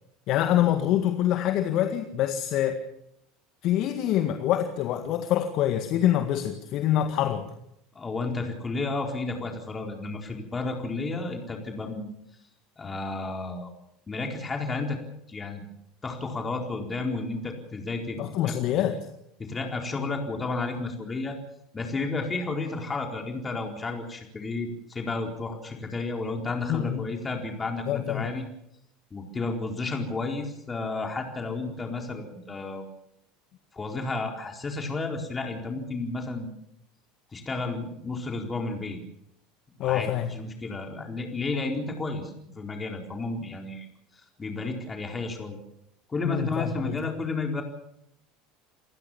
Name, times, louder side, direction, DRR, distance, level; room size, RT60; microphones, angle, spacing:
voice 1, 0.3-2.8 3.6-7.5 18.2-19.0 26.7-27.1 27.9-28.3 39.8-40.4 46.2-47.0, left 11 dB, 55° left, 7 dB, 1.9 m, -25 dB
voice 2, 7.9-12.1 12.8-13.7 14.1-15.0 15.3-15.6 16.0-18.2 18.4-18.6 19.4-21.4 21.7-28.4 29.1-32.8 33.7-36.5 37.3-39.0 39.8-43.9 44.1-45.6 46.1-47.6, left 3 dB, 25° left, 3 dB, 4.3 m, -32 dB
29.0 x 15.5 x 7.2 m, 0.77 s
hypercardioid pair, 75°, 0 cm